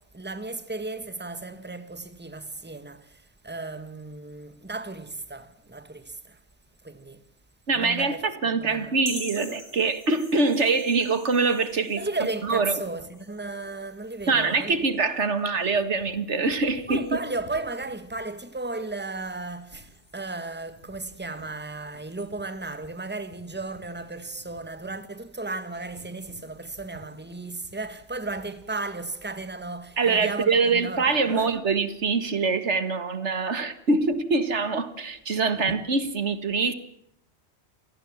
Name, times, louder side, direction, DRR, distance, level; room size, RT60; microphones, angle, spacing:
voice 1, 0.0-6.4 6.8-7.2 7.7-9.0 12.0-14.9 16.9-31.5 35.7-35.9, right 3 dB, 10° right, 1.5 m, -35 dB
voice 2, 7.7-12.0 12.4-12.8 14.3-17.2 30.0-36.7, right 4 dB, 85° right, 2.1 m, -24 dB
sound 1, 9.0-28.6, left 1 dB, 50° left, 6.7 m, -49 dB
28.0 x 18.0 x 7.3 m
omnidirectional pair, 1.1 m